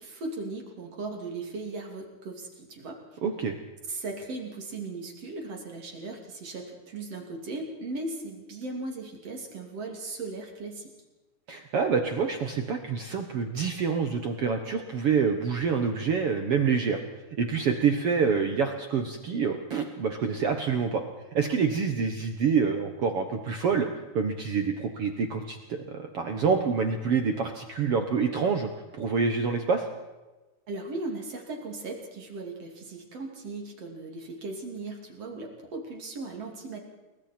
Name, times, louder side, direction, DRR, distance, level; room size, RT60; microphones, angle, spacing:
voice 1, 0.0-3.0 3.9-10.9 30.7-36.8, right 2 dB, 45° right, 2 dB, 3.5 m, -37 dB
voice 2, 3.2-3.5 11.5-17.0 17.4-21.0 21.3-23.9 24.1-28.7 29.0-29.9, right 5 dB, 65° right, 5 dB, 1.5 m, -27 dB
29.5 x 21.5 x 4.5 m, 1.1 s
omnidirectional pair, 4.4 m